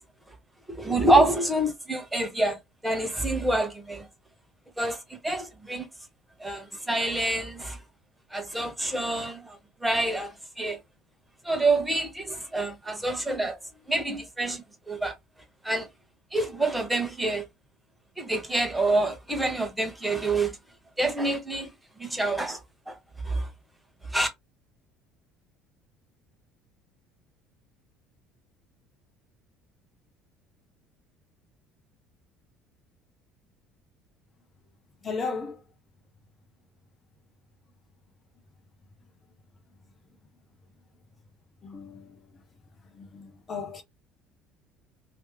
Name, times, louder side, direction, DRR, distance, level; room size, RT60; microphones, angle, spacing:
voice 1, 0.7-4.1 4.8-5.9 6.4-7.8 8.3-10.8 11.4-13.6 13.9-15.1 15.6-15.9 16.3-17.4 18.2-20.5 21.0-21.7 22.0-22.6 22.9-23.0 23.2-23.5 24.1-24.3, right 2 dB, 10° right, 1.3 m, -27 dB
voice 2, 35.0-35.6 41.6-42.3 42.9-43.8, left 4 dB, 35° left, 0.9 m, -35 dB
3.1 x 3.0 x 3.2 m
figure-of-eight pair, 60°, 0 cm